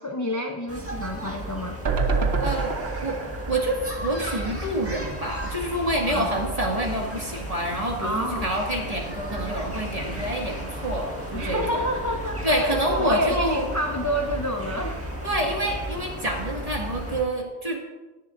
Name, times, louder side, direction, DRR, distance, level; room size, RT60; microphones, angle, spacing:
voice 1, 0.0-1.8 6.1-6.3 8.0-8.5 11.3-15.0, equal, 20° left, 2 dB, 0.7 m, -28 dB
sound 1, 0.7-17.2, right 1 dB, 10° right, 1.6 m, -34 dB
sound 2, 1.9-5.1 5.5-5.6 5.8-5.9, right 4 dB, 70° right, 1.2 m, -28 dB
voice 2, 2.4-2.7 3.0-3.2 3.5-11.8 12.4-13.7 15.2-17.8, right 1 dB, 35° right, -1 dB, 2.2 m, -27 dB
17.5 x 10.5 x 2.6 m, 1.2 s
omnidirectional pair, 1.1 m